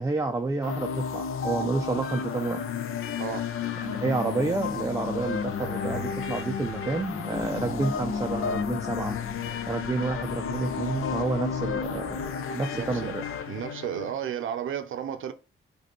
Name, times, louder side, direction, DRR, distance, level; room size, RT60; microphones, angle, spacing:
voice 1, 0.0-2.6 3.8-9.2 9.7-12.2 12.5-13.2, right 3 dB, 15° right, 0.3 m, -29 dB
sound 1, 0.6-14.1, left 6 dB, 90° left, 0.5 m, -32 dB
voice 2, 3.2-3.5 12.7-13.2 13.5-15.3, right 9 dB, 75° right, 0.5 m, -33 dB
sound 2, 3.5-8.5, left 2 dB, 55° left, 1.2 m, -54 dB
sound 3, 7.3-12.3, left 2 dB, 25° left, 0.8 m, -42 dB
5.0 x 2.3 x 2.9 m
wide cardioid pair, 130°, 21 cm